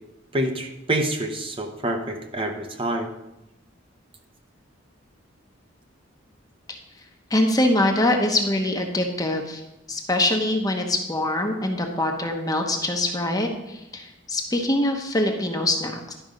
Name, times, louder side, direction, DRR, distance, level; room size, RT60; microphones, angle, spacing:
voice 1, 0.3-3.1, right 1 dB, 25° right, 4 dB, 0.8 m, -27 dB
voice 2, 7.3-9.6 9.9-16.1, left 1 dB, 20° left, 3 dB, 1.0 m, -23 dB
11.5 x 5.2 x 5.1 m, 0.91 s
head